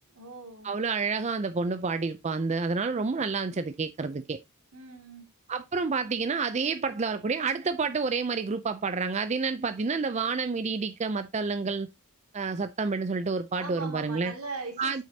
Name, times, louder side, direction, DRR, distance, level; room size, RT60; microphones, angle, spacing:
voice 1, 0.1-0.7 4.7-5.3 13.6-15.0, right 4 dB, 80° right, 2.4 m, -40 dB
voice 2, 0.6-4.4 5.5-11.9 12.3-14.3 14.8-15.0, right 4 dB, 30° right, 0.4 m, -29 dB
8.3 x 6.4 x 2.8 m
head